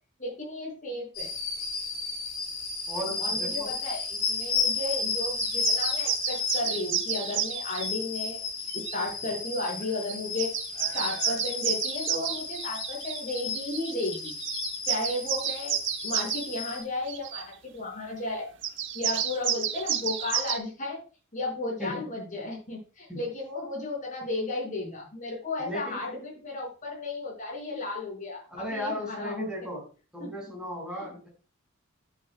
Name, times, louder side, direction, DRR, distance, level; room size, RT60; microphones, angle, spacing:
voice 1, 0.2-1.3 3.1-10.5 10.9-14.3 14.8-15.8 16.0-18.5 18.9-21.0 21.3-29.5 30.2-30.3 30.9-31.1, left 2 dB, 40° left, -2 dB, 5.1 m, -34 dB
sound 1, 1.1-16.8, left 4 dB, 80° left, 5.7 m, -33 dB
voice 2, 2.9-3.7 21.8-22.1 23.1-23.2 25.6-26.1 28.5-29.8 30.1-31.3, left 1 dB, 5° right, -2 dB, 4.8 m, -36 dB
sound 2, 5.4-7.9 8.7-9.0 9.8-9.9 10.1-16.5 17.1-17.4 18.6-20.6, right 10 dB, 60° right, 1.0 m, -31 dB
11.0 x 10.5 x 2.2 m, 0.36 s
head